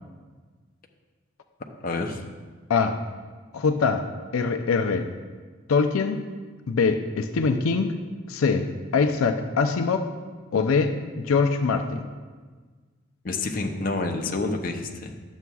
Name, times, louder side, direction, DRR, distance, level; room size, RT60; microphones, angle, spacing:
voice 1, 1.8-2.2 13.2-15.1, left 3 dB, 45° left, 3 dB, 0.6 m, -28 dB
voice 2, 3.5-4.0 4.3-5.1 5.7-6.2 6.7-7.9 8.3-10.1 10.5-12.1, left 4 dB, 85° left, 7 dB, 0.4 m, -23 dB
10.5 x 7.1 x 2.3 m, 1.4 s
head